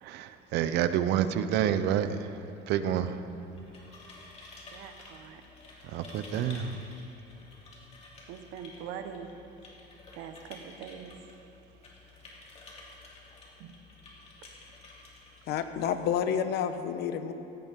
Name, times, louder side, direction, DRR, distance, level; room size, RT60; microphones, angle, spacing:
voice 1, 0.0-2.4 2.7-3.2 5.8-6.8, right 9 dB, 70° right, 0.8 m, -28 dB
sound 1, 3.4-16.1, left 3 dB, 35° left, 3.0 m, -52 dB
voice 2, 4.7-5.4 8.3-9.3 10.1-11.1 13.6-13.8, right 8 dB, 85° right, 1.2 m, -43 dB
voice 3, 15.5-17.3, left 8 dB, 65° left, 1.0 m, -29 dB
17.5 x 17.0 x 3.7 m
cardioid pair, 140°, 18 cm